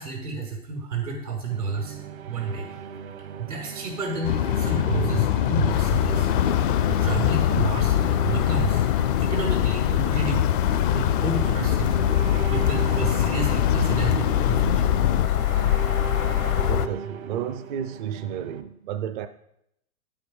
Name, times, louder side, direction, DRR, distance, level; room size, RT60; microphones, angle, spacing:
voice 1, 0.0-2.0 2.3-2.8 3.1-8.0 8.2-8.8 9.2-10.5 10.9-14.9, right 3 dB, 85° right, 5.2 m, -31 dB
sound 1, 1.5-18.6, right 6 dB, 65° right, 1.1 m, -38 dB
sound 2, 4.2-15.3, left 10 dB, 35° left, 0.4 m, -24 dB
sound 3, 5.7-16.9, left 12 dB, 65° left, 0.8 m, -25 dB
voice 2, 16.7-19.3, right 9 dB, 35° right, 0.4 m, -32 dB
9.7 x 8.7 x 5.3 m
hypercardioid pair, 135°, 47 cm